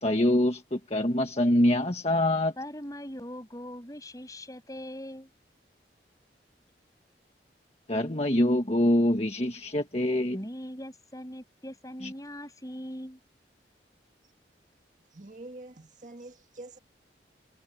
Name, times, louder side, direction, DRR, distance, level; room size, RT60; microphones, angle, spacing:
voice 1, 0.0-2.5 7.9-10.4 12.0-12.1, left 1 dB, 35° left, 1.7 m, -25 dB
voice 2, 2.6-5.3 10.3-13.2, equal, 20° left, 7.9 m, -40 dB
voice 3, 15.1-16.8, right 2 dB, 45° right, 1.8 m, -45 dB
head